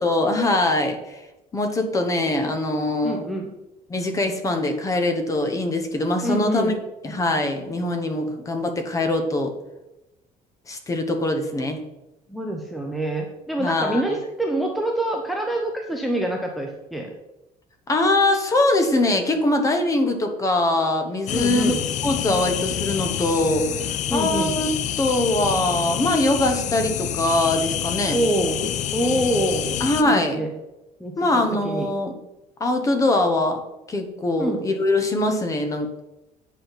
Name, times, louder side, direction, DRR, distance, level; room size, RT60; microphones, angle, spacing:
voice 1, 0.0-1.2 1.5-3.2 3.9-6.7 7.0-9.5 10.7-11.8 13.6-14.0 17.9-21.7 22.0-23.6 24.1-24.7 25.0-28.2 29.8-30.4 31.2-32.1 32.6-33.6 33.9-36.1, left 2 dB, 20° left, 5 dB, 1.1 m, -22 dB
voice 2, 3.0-3.5 6.2-6.8 12.3-17.1 21.3-21.8 24.1-24.5 28.1-28.6 28.9-29.7 30.0-30.5 31.0-31.9 34.4-34.6, right 1 dB, ahead, 2 dB, 0.7 m, -26 dB
sound 1, 21.3-30.0, left 10 dB, 50° left, 0.5 m, -27 dB
8.5 x 5.7 x 5.8 m, 0.97 s
cardioid pair, 175°, 16 cm